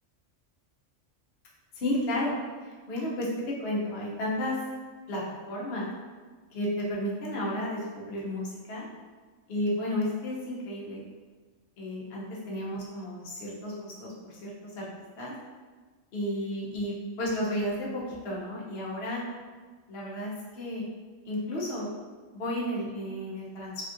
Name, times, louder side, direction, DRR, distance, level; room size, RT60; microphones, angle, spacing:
voice 1, 1.8-2.3 2.9-4.6 5.1-5.2 5.5-5.9 6.5-8.9 9.5-11.0 11.8-14.5 14.8-14.9 15.2-15.3 16.1-19.2 19.9-20.9 21.2-21.9 22.3-23.7, left 1 dB, 60° left, -5 dB, 0.9 m, -32 dB
3.4 x 2.4 x 2.5 m, 1.4 s
omnidirectional pair, 1.3 m